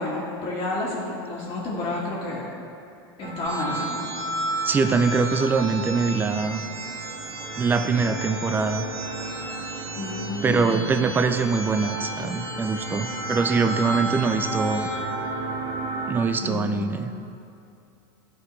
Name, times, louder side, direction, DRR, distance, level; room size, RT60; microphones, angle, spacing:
voice 1, 0.0-2.4 3.2-4.0 9.9-10.9 16.4-16.9, left 2 dB, 45° left, -8 dB, 1.6 m, -30 dB
sound 1, 3.2-16.2, right 2 dB, 45° right, 0.8 m, -32 dB
sound 2, 3.4-15.0, right 2 dB, 80° right, 1.2 m, -38 dB
voice 2, 4.6-6.6 7.6-8.9 10.4-14.9 16.1-17.1, right 4 dB, 15° right, 8 dB, 0.4 m, -23 dB
12.0 x 4.1 x 3.2 m, 2.7 s
hypercardioid pair, 105°, 13 cm